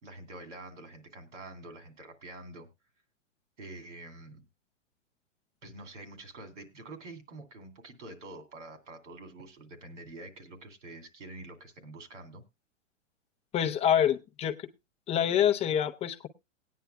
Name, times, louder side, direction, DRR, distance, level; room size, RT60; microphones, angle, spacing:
voice 1, 0.0-2.7 3.6-4.4 5.6-12.4, right 2 dB, 75° right, 8 dB, 2.7 m, -46 dB
voice 2, 13.5-14.7 15.1-16.3, left 9 dB, 15° left, 9 dB, 0.5 m, -26 dB
19.0 x 9.4 x 2.2 m, 0.22 s
hypercardioid pair, 115°, 37 cm